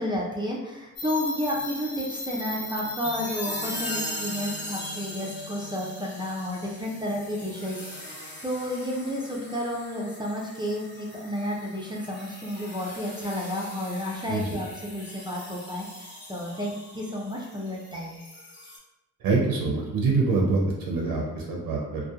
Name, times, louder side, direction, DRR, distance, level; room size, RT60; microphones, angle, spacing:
voice 1, 0.0-18.2, left 1 dB, 10° right, -4 dB, 0.5 m, -31 dB
sound 1, 1.0-18.8, left 1 dB, 30° left, 1.0 m, -39 dB
voice 2, 19.2-20.6 20.9-22.0, right 4 dB, 65° right, -2 dB, 0.6 m, -25 dB
2.7 x 2.2 x 2.3 m, 1.0 s
cardioid pair, 65°, 38 cm